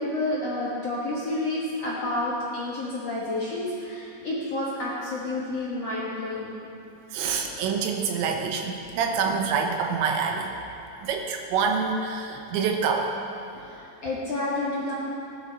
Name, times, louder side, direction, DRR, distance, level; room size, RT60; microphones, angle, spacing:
voice 1, 0.0-6.6 13.7-14.9, left 2 dB, 55° left, -7 dB, 1.9 m, -30 dB
voice 2, 7.1-10.5 11.0-13.1, right 5 dB, 80° right, 3 dB, 3.3 m, -26 dB
18.5 x 10.5 x 4.2 m, 2.9 s
omnidirectional pair, 5.2 m